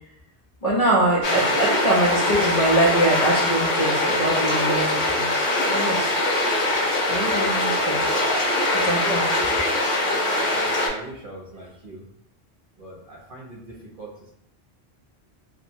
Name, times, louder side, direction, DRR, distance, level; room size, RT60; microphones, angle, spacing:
voice 1, 0.6-6.1 7.1-8.1 8.8-9.4, right 1 dB, 45° left, -5 dB, 0.6 m, -23 dB
sound 1, 1.2-10.9, left 1 dB, 85° left, 1.1 m, -22 dB
voice 2, 10.5-12.1 12.8-14.3, right 1 dB, 55° right, -2 dB, 0.8 m, -41 dB
2.9 x 2.1 x 2.7 m, 0.71 s
omnidirectional pair, 1.1 m